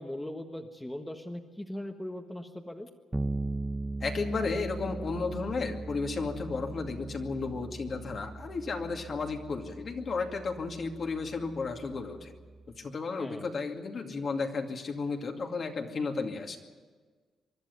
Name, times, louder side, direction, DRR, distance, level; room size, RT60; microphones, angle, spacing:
voice 1, 0.0-2.9 13.2-13.5, left 1 dB, 10° left, 4 dB, 1.4 m, -39 dB
Bass guitar, 3.1-12.8, right 2 dB, 15° right, 0.7 m, -39 dB
voice 2, 4.0-12.3 12.8-16.6, left 4 dB, 50° left, 3 dB, 2.4 m, -33 dB
24.0 x 11.5 x 9.6 m, 1.5 s
cardioid pair, 80°, 0 cm